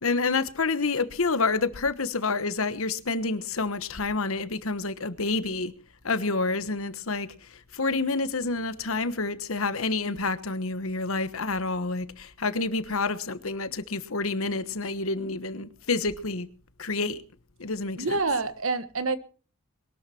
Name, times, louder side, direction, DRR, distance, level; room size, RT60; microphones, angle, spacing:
voice 1, 0.0-5.7 6.0-7.3 7.7-16.5 16.8-17.2 17.6-18.2, left 3 dB, 70° left, 1.3 m, -28 dB
voice 2, 18.0-19.2, right 3 dB, 70° right, 1.5 m, -27 dB
22.0 x 12.5 x 4.4 m
head